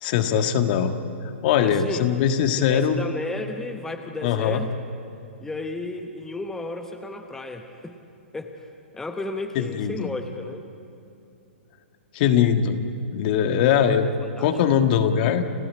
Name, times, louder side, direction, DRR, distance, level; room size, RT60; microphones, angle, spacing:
voice 1, 0.0-0.9 1.4-3.0 4.2-4.6 9.5-10.1 12.1-12.8 13.1-14.1 14.4-15.4, left 8 dB, 45° left, 7 dB, 1.6 m, -21 dB
voice 2, 1.6-2.1 2.7-4.7 5.4-8.0 8.3-8.7 8.9-10.6 13.7-14.5, left 2 dB, 5° left, 5 dB, 1.1 m, -33 dB
29.5 x 14.0 x 8.6 m, 2.6 s
hypercardioid pair, 135°, 7 cm